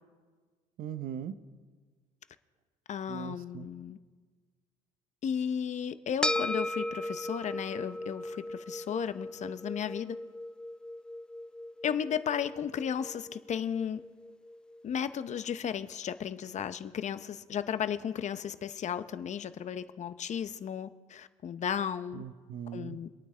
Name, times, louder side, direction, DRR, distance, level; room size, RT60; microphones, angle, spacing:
voice 1, 0.8-1.4 3.1-3.7 22.1-23.0, right 9 dB, 70° right, 12 dB, 0.7 m, -40 dB
voice 2, 2.9-4.0 5.2-10.2 11.8-14.0 14.8-22.2 22.7-23.1, left 8 dB, 50° left, 12 dB, 0.7 m, -34 dB
sound 1, 6.2-14.8, left 1 dB, 5° left, 0.4 m, -37 dB
25.5 x 9.2 x 3.3 m, 1.5 s
supercardioid pair, 80°, 16 cm